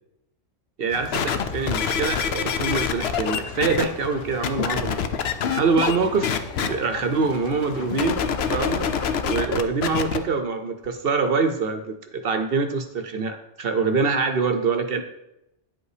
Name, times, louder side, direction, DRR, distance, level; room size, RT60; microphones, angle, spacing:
voice 1, 0.8-5.0 5.5-15.0, right 4 dB, 55° right, 8 dB, 0.8 m, -25 dB
sound 1, 0.9-9.1, left 6 dB, 90° left, 1.2 m, -39 dB
sound 2, 1.1-3.8 4.4-6.0 6.2-6.7 7.9-10.2 10.8-10.9, left 7 dB, 60° left, 0.8 m, -25 dB
9.4 x 5.4 x 4.9 m, 0.88 s
omnidirectional pair, 1.3 m